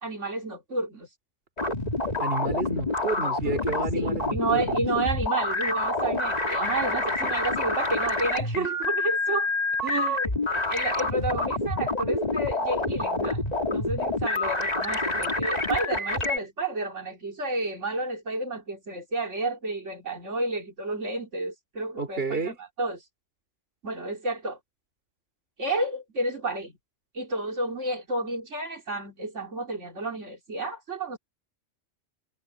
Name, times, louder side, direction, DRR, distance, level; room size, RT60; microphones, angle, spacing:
voice 1, 0.0-1.1 3.2-3.6 3.9-9.5 9.9-23.0 23.8-24.6 25.6-26.7 27.1-31.2, right 2 dB, 90° right, 3.7 m, -31 dB
sound 1, 1.6-16.4, left 2 dB, 35° left, 2.4 m, -27 dB
voice 2, 2.2-4.8 6.6-6.8 7.2-7.3 9.8-10.2 22.0-22.6, right 3 dB, 55° right, 2.9 m, -31 dB
omnidirectional pair, 1.2 m